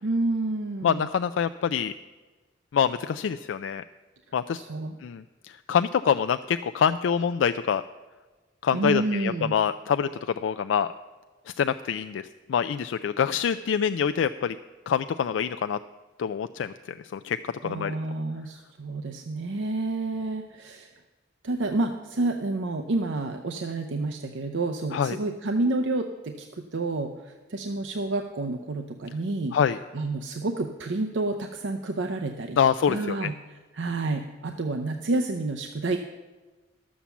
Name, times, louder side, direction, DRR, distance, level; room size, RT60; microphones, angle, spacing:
voice 1, 0.0-1.1 4.5-4.9 8.7-9.5 17.6-20.9 21.4-29.6 29.9-32.6 32.9-33.3 33.7-36.0, right 2 dB, 80° right, 4 dB, 0.7 m, -29 dB
voice 2, 0.8-1.9 2.7-3.8 4.3-4.6 5.0-7.8 8.6-10.9 11.5-12.2 12.5-14.6 14.9-15.8 16.2-16.7 17.1-18.0 24.9-25.2 29.5-29.8 32.6-33.3, left 7 dB, 90° left, 10 dB, 0.3 m, -25 dB
12.5 x 7.4 x 7.1 m, 1.3 s
head